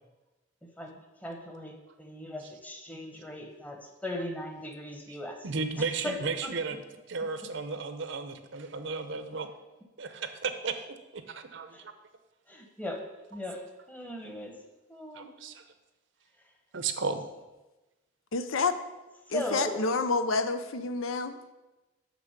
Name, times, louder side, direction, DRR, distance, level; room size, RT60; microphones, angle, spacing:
voice 1, 0.6-5.5 5.8-6.8 7.2-7.3 11.7-11.9 12.5-14.6 14.9-15.3 16.4-16.5 19.3-19.8, left 1 dB, 10° left, 3 dB, 1.0 m, -39 dB
voice 2, 5.4-6.8 7.1-9.5 10.0-10.9 11.1-11.9 15.1-15.6 16.7-17.2, right 4 dB, 65° right, 9 dB, 0.7 m, -34 dB
voice 3, 18.3-18.7 19.3-21.4, left 3 dB, 85° left, 10 dB, 0.6 m, -28 dB
6.1 x 6.1 x 6.7 m, 1.1 s
head